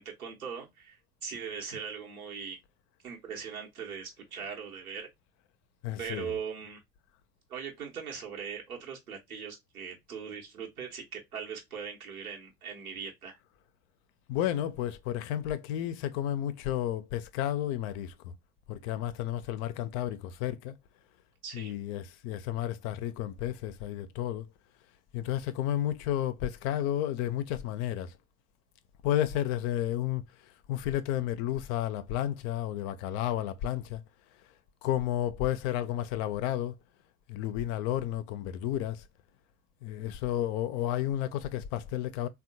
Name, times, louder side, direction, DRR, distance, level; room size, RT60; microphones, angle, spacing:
voice 1, 0.0-2.6 3.0-5.1 6.0-6.8 7.5-13.4 21.4-21.8, right 6 dB, 80° right, 1.0 m, -40 dB
voice 2, 5.8-6.4 14.3-18.3 18.7-20.7 21.5-24.5 25.1-28.1 29.0-30.2 30.7-34.0 34.8-36.8 37.3-39.0 39.8-42.3, left 12 dB, 50° left, 0.5 m, -32 dB
3.4 x 2.3 x 2.6 m
figure-of-eight pair, 60°, 43 cm